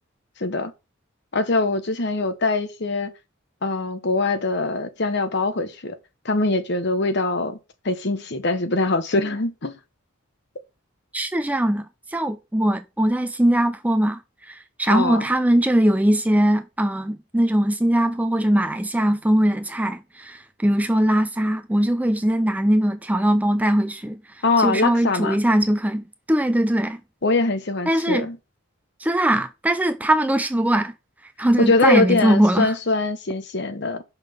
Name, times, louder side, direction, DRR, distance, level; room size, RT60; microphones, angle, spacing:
voice 1, 0.4-0.7 1.3-3.1 3.6-6.0 6.2-7.6 7.8-9.8 14.9-15.2 24.4-25.4 27.2-28.4 31.6-34.0, left 2 dB, 50° left, 1.0 m, -22 dB
voice 2, 11.1-27.0 27.9-28.3 29.0-30.9 31.2-32.7, right 1 dB, 5° right, 0.4 m, -21 dB
5.7 x 5.3 x 5.5 m
head